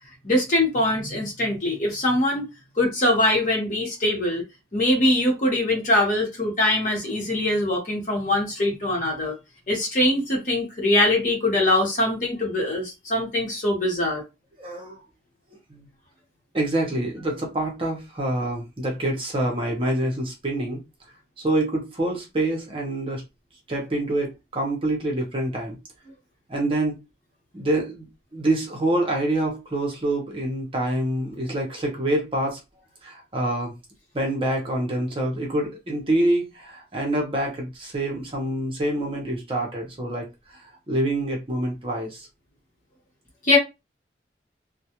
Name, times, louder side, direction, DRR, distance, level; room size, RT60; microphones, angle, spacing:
voice 1, 0.2-2.4 2.8-4.4 4.7-9.3 9.7-14.2 43.4-43.6, left 1 dB, 45° left, 1.0 m, -22 dB
voice 2, 14.6-15.0 15.7-15.9 16.5-20.8 21.4-23.2 23.7-25.8 26.5-27.0 27.5-32.6 33.0-33.7 34.1-40.3 40.5-42.3, right 1 dB, 30° right, 0.7 m, -26 dB
2.3 x 2.1 x 2.8 m
head